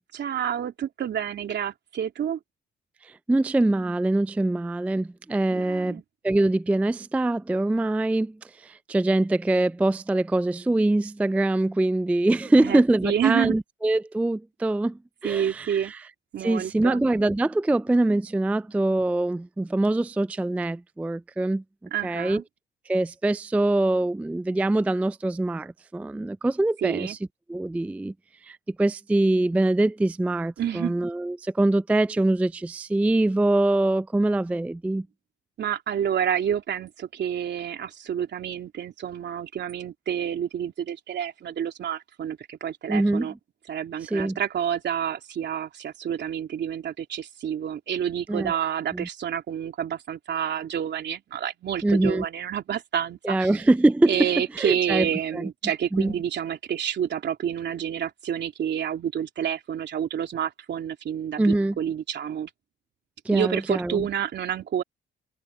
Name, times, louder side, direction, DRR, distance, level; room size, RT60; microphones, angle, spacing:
voice 1, 0.1-2.4 5.5-6.0 12.6-13.5 15.2-15.9 16.3-17.0 21.9-22.4 26.8-27.2 30.6-30.9 35.6-43.3 43.7-53.5 54.1-62.5 63.3-64.8, right 9 dB, 60° right, 3.3 m, -29 dB
voice 2, 3.0-16.0 16.4-21.6 22.0-22.4 22.9-27.2 27.5-28.1 28.4-35.1 42.9-43.3 44.0-44.4 48.3-48.6 48.9-49.1 51.8-52.2 53.2-54.3 54.5-55.1 55.3-55.5 55.9-56.1 61.4-61.8 63.3-64.1, right 2 dB, 5° right, 0.3 m, -24 dB
cardioid pair, 90°, 20 cm